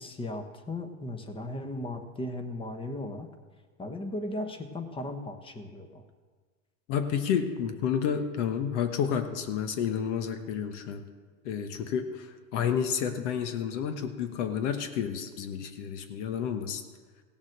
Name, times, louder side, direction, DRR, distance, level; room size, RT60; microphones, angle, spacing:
voice 1, 0.0-3.3 3.8-6.0, left 1 dB, 15° left, 7 dB, 1.1 m, -36 dB
voice 2, 6.9-11.0 11.4-16.8, left 8 dB, 60° left, 8 dB, 1.2 m, -30 dB
16.5 x 7.2 x 6.6 m, 1.5 s
supercardioid pair, 130°, 40 cm